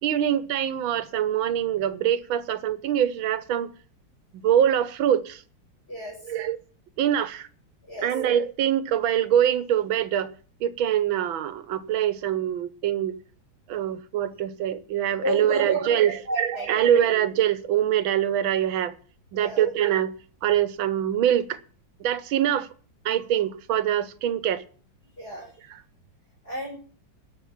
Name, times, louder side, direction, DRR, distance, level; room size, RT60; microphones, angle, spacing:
voice 1, 0.0-3.7 4.3-5.4 6.3-6.6 7.0-7.5 8.0-10.3 10.6-13.2 13.7-18.9 19.3-20.1 20.4-21.6 22.0-22.7 23.1-24.6 25.7-25.8, right 10 dB, 85° right, 1.7 m, -24 dB
voice 2, 15.2-16.8 19.3-19.7 25.2-25.5 26.4-26.8, equal, 30° left, 5.7 m, -33 dB
13.0 x 6.0 x 8.4 m
omnidirectional pair, 2.1 m